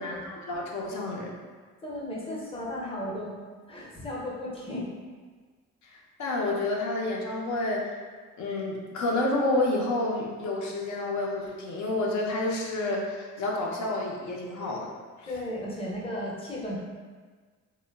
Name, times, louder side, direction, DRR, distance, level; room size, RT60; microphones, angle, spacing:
voice 1, 0.0-1.3 5.8-7.8 8.4-14.9 15.2-15.3, left 2 dB, 70° left, -2 dB, 0.6 m, -29 dB
voice 2, 1.8-3.3 3.7-4.9 15.3-16.8, left 1 dB, 20° left, -5 dB, 0.6 m, -35 dB
2.9 x 2.2 x 2.2 m, 1.5 s
cardioid pair, 90°, 30 cm